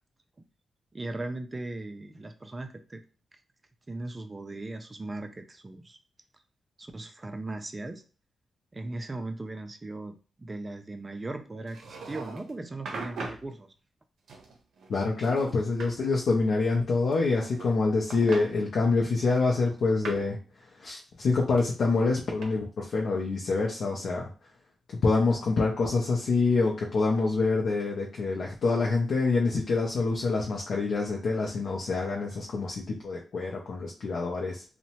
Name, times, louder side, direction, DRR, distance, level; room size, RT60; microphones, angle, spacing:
voice 1, 0.9-3.0 3.9-6.0 6.8-8.0 8.7-13.7, right 2 dB, 20° right, 7 dB, 0.3 m, -38 dB
sound 1, 11.7-12.5 12.9-13.5 14.3-15.0 15.2-16.0 17.1-17.8 18.1-18.5 19.3-20.3 21.6-22.4, right 4 dB, 75° right, 0.6 m, -41 dB
voice 2, 14.9-20.4 20.8-24.3 24.9-34.6, left 3 dB, 60° left, -2 dB, 0.5 m, -26 dB
2.8 x 2.1 x 2.8 m, 0.35 s
wide cardioid pair, 145°, 0 cm